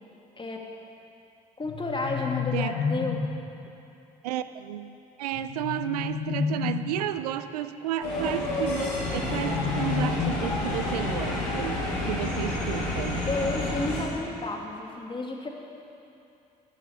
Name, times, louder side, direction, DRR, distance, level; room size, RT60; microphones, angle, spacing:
sound 1, 1.6-3.5 5.3-7.2 9.0-11.0, left 6 dB, 60° left, 1.3 m, -31 dB
voice 1, 1.6-3.2 13.2-15.5, left 2 dB, 25° left, 0 dB, 2.5 m, -31 dB
voice 2, 2.5-2.9 4.2-13.3, right 12 dB, 85° right, 12 dB, 0.5 m, -32 dB
sound 2, 8.0-14.0, left 2 dB, 85° left, 4.1 m, -29 dB
14.0 x 13.0 x 5.1 m, 2.7 s
hypercardioid pair, 55°, 19 cm